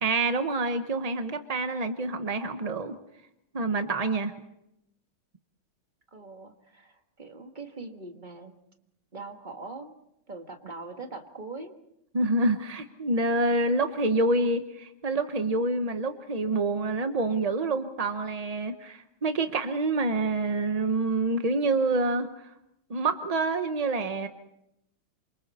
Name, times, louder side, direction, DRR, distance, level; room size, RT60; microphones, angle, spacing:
voice 1, 0.0-3.0 3.5-4.3 12.1-22.5 22.9-24.3, right 2 dB, 50° right, 8 dB, 0.4 m, -27 dB
voice 2, 6.1-8.5 9.1-9.9 10.3-11.7, right 3 dB, 25° right, 5 dB, 1.5 m, -42 dB
27.5 x 25.0 x 4.2 m, 0.82 s
omnidirectional pair, 2.3 m